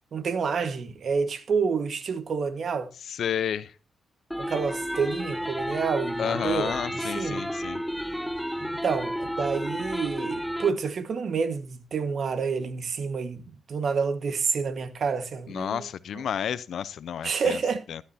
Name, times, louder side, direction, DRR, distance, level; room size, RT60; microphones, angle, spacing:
voice 1, 0.1-2.9 4.4-7.5 8.6-15.9 16.1-16.2 17.2-17.8, right 5 dB, 65° right, 1.6 m, -29 dB
voice 2, 3.1-3.7 6.2-7.8 15.5-17.6 17.9-18.0, left 9 dB, 75° left, 0.7 m, -31 dB
sound 1, 4.3-10.7, equal, ahead, 0.6 m, -32 dB
13.0 x 11.5 x 2.8 m
supercardioid pair, 55°, 0 cm